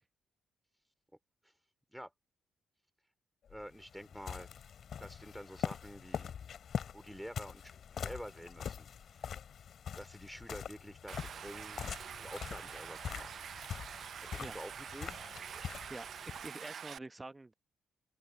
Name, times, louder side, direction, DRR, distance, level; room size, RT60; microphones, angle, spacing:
sound 1, 3.5-16.5, left 8 dB, 65° left, 2.5 m, -44 dB
voice 1, 3.5-4.5 5.0-6.5 6.9-8.9 9.1-9.3 9.9-11.8 12.2-13.3 14.2-15.2, equal, ahead, 4.3 m, -48 dB
Stream, 11.1-17.0, right 8 dB, 60° right, 0.4 m, -46 dB
voice 2, 15.9-17.5, right 2 dB, 20° right, 1.0 m, -47 dB
open air
cardioid pair, 80°, 0 cm